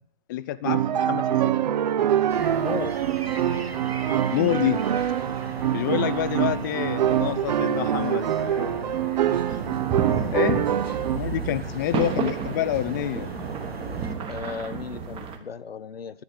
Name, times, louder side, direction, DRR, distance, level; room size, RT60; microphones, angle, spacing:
voice 1, 0.3-1.5 4.3-4.8 5.7-8.8 10.3-13.3, left 13 dB, 20° left, 0.4 m, -28 dB
sound 1, 0.6-11.2, right 10 dB, 45° right, 0.9 m, -25 dB
sound 2, 2.3-14.2, right 2 dB, 90° right, 2.2 m, -38 dB
voice 2, 2.6-3.0 14.3-16.2, left 6 dB, 75° left, 0.9 m, -35 dB
sound 3, 9.5-15.4, right 7 dB, 15° right, 1.4 m, -31 dB
10.5 x 9.9 x 9.6 m
figure-of-eight pair, 125°, 30 cm